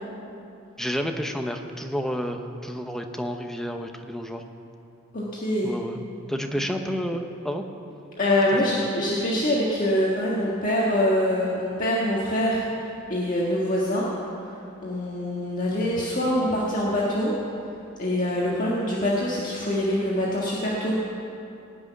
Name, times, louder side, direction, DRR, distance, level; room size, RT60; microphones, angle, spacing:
voice 1, 0.8-4.4 5.6-6.0 6.3-7.7 8.5-8.7, equal, ahead, 4 dB, 0.8 m, -30 dB
voice 2, 5.1-5.8 8.2-12.6 13.1-14.1 14.8-17.3 18.0-20.9, left 1 dB, 40° left, -5 dB, 1.6 m, -24 dB
19.0 x 6.3 x 9.2 m, 2.7 s
head